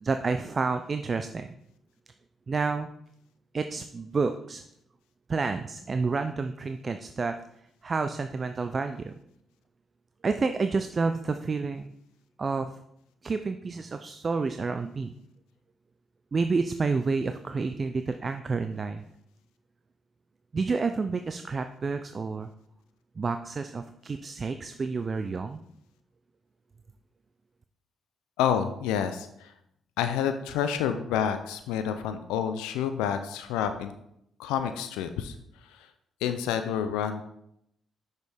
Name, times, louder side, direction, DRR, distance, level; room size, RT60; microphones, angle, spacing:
voice 1, 0.0-1.5 2.5-2.9 3.5-4.6 5.3-7.3 7.8-9.1 10.2-11.9 12.4-12.7 13.2-15.1 16.3-19.0 20.5-22.5 23.2-25.6, right 4 dB, 40° right, 8 dB, 0.4 m, -29 dB
voice 2, 28.4-29.5 30.0-33.9 34.4-35.4 35.6-35.9 36.2-37.2, left 8 dB, 85° left, 9 dB, 0.4 m, -29 dB
6.1 x 5.3 x 3.4 m, 0.76 s
supercardioid pair, 55°, 0 cm